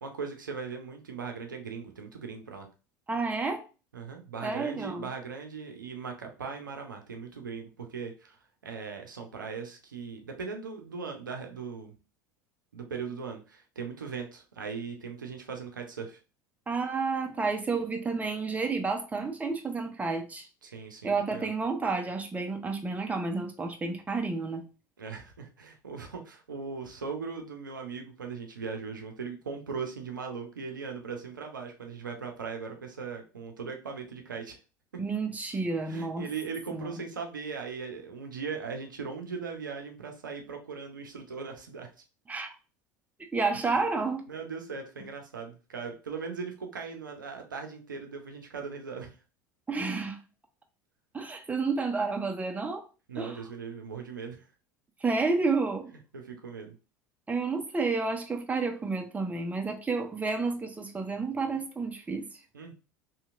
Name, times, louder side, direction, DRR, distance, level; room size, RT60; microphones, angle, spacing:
voice 1, 0.0-2.7 3.9-11.9 12.7-16.2 20.6-21.5 25.0-34.6 35.9-41.9 44.3-49.2 53.1-54.4 56.1-56.7 62.5-62.7, right 5 dB, 85° right, 0.5 m, -39 dB
voice 2, 3.1-3.6 4.4-5.0 16.7-20.5 21.0-24.6 35.0-36.3 36.7-37.0 42.3-42.5 43.3-44.3 49.7-50.2 51.1-52.8 53.2-53.4 55.0-55.9 57.3-62.2, right 4 dB, 15° right, 0.6 m, -30 dB
2.8 x 2.8 x 2.4 m
figure-of-eight pair, 75°, 10 cm